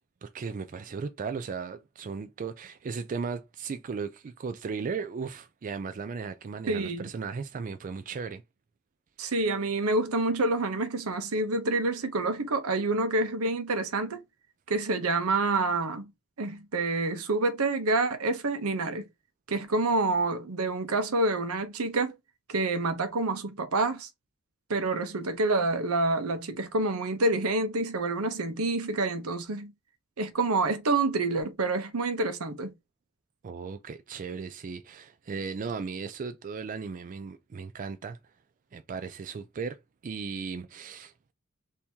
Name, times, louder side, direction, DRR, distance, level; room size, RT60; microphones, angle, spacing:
voice 1, 0.2-8.4 33.4-38.2 38.7-41.3, right 5 dB, 35° right, 0.3 m, -36 dB
voice 2, 6.7-7.1 9.2-14.2 14.7-16.1 16.4-19.0 19.5-22.1 22.5-24.1 24.7-29.7 30.2-32.7, right 2 dB, 80° right, 0.8 m, -27 dB
3.4 x 2.8 x 4.3 m
head